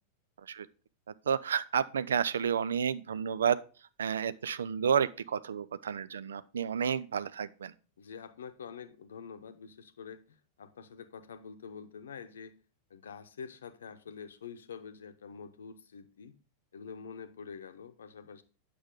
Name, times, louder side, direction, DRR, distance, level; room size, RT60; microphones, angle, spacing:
voice 1, 1.3-3.6 4.0-7.7, right 7 dB, 65° right, 0.4 m, -30 dB
voice 2, 8.0-12.5 12.9-16.4 16.7-18.4, left 6 dB, 65° left, 0.8 m, -46 dB
8.6 x 6.9 x 3.7 m
figure-of-eight pair, 90°, 0 cm